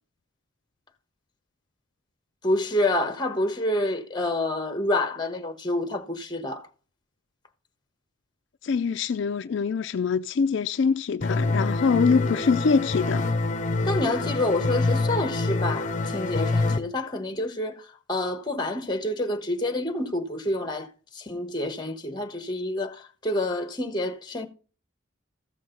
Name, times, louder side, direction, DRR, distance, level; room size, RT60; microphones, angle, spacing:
voice 1, 2.4-6.7 13.8-20.9 21.1-24.5, left 1 dB, 20° left, 1.2 m, -28 dB
voice 2, 8.6-13.2, left 5 dB, 60° left, 0.4 m, -24 dB
sound 1, 11.2-16.8, left 2 dB, 35° left, 0.8 m, -26 dB
14.5 x 6.4 x 3.8 m
head